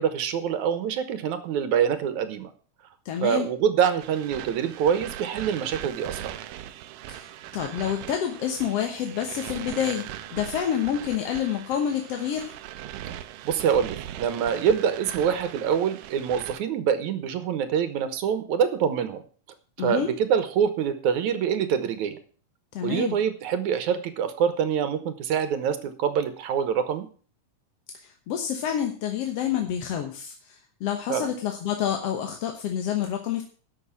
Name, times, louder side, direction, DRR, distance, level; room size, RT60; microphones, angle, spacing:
voice 1, 0.0-2.5 3.2-6.3 13.4-19.2 19.8-22.2 22.8-27.1 31.1-31.3, right 8 dB, 70° right, 11 dB, 2.4 m, -25 dB
voice 2, 3.1-3.5 7.1-10.1 10.3-12.5 19.8-20.1 22.7-23.2 27.9-33.4, left 9 dB, 60° left, 4 dB, 1.9 m, -28 dB
sound 1, 4.0-16.6, right 12 dB, 90° right, 2.4 m, -39 dB
12.0 x 6.7 x 7.2 m, 0.42 s
omnidirectional pair, 3.8 m